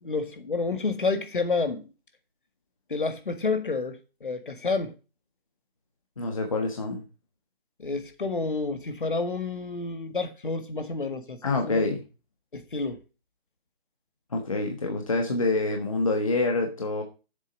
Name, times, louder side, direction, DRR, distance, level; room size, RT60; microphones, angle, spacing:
voice 1, 0.0-1.8 2.9-4.9 7.8-11.8 12.5-13.0, left 3 dB, 55° left, 1.9 m, -29 dB
voice 2, 6.2-7.0 11.4-12.0 14.3-17.0, left 3 dB, 35° left, 1.3 m, -26 dB
7.6 x 7.4 x 5.2 m
hypercardioid pair, 175°, 30 cm